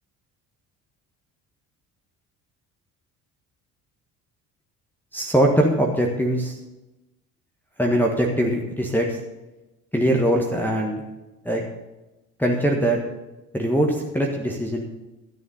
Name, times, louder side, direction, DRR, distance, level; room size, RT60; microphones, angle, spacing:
voice 1, 5.1-6.6 7.8-9.2 9.9-11.0 11.4-11.6 12.4-13.0 13.5-14.9, right 1 dB, 5° left, -2 dB, 1.5 m, -21 dB
13.0 x 7.0 x 5.6 m, 1.0 s
figure-of-eight pair, 50°, 44 cm